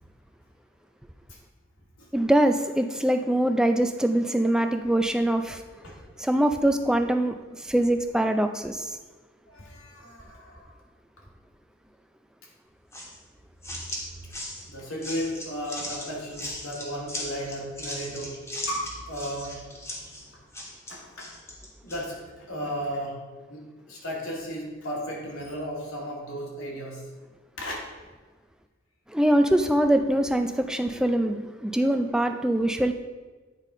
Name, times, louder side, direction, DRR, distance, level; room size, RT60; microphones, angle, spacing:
voice 1, 2.1-5.6 6.2-9.0 29.1-32.9, right 1 dB, 5° right, 6 dB, 0.4 m, -23 dB
voice 2, 9.5-10.7 14.7-19.7 20.9-21.4 21.8-27.1 27.6-27.8, equal, 85° left, -3 dB, 2.2 m, -35 dB
sound 1, 12.9-22.1, left 1 dB, 15° left, 1.3 m, -38 dB
9.1 x 4.1 x 4.9 m, 1.3 s
head